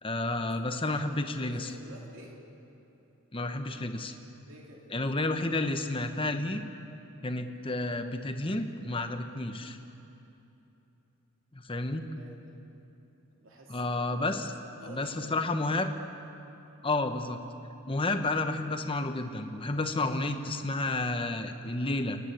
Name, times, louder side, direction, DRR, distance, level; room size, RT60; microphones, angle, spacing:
voice 1, 0.0-1.7 3.3-4.2 4.9-6.6 7.2-9.8 11.5-12.0 13.7-14.5 14.9-15.9 16.8-17.4 17.9-22.2, left 2 dB, 25° left, 7 dB, 1.0 m, -31 dB
voice 2, 1.4-2.4 4.4-4.9 12.1-12.5 13.3-14.0 14.8-15.4 19.9-20.2, right 1 dB, 60° right, -1 dB, 3.4 m, -50 dB
29.5 x 11.0 x 8.4 m, 2.9 s
head